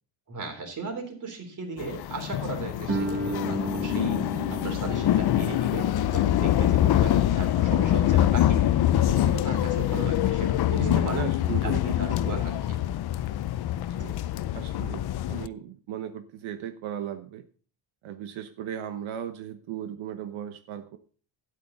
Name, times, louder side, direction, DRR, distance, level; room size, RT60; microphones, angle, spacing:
voice 1, 0.3-8.8 9.1-11.3 11.6-12.8 14.0-14.2, right 3 dB, 40° right, 4 dB, 3.6 m, -37 dB
sound 1, 1.8-15.5, left 12 dB, 55° left, 0.6 m, -25 dB
Guitar, 2.9-8.2, right 2 dB, 25° right, 1.9 m, -35 dB
voice 2, 10.8-11.8 12.2-12.4 14.0-14.1 14.5-17.4 18.0-21.0, right 10 dB, 85° right, 9 dB, 1.1 m, -36 dB
13.0 x 9.5 x 4.0 m, 0.40 s
cardioid pair, 175°, 46 cm